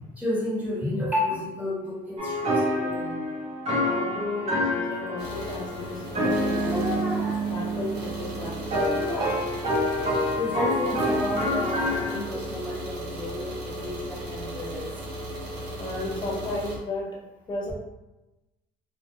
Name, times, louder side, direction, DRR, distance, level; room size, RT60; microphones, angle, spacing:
voice 1, 0.2-3.2 4.9-5.0 6.4-7.5 8.8-9.4 10.4-15.0, left 1 dB, 10° right, -8 dB, 1.1 m, -31 dB
sound 1, 2.2-12.2, equal, 40° right, 0.7 m, -27 dB
voice 2, 3.8-7.0 7.5-9.1 15.8-17.2 17.5-17.7, left 2 dB, 25° left, -3 dB, 0.5 m, -34 dB
sound 2, 5.2-16.8, right 1 dB, 85° right, 0.8 m, -37 dB
2.3 x 2.1 x 2.8 m, 1.0 s
cardioid pair, 110°, 17 cm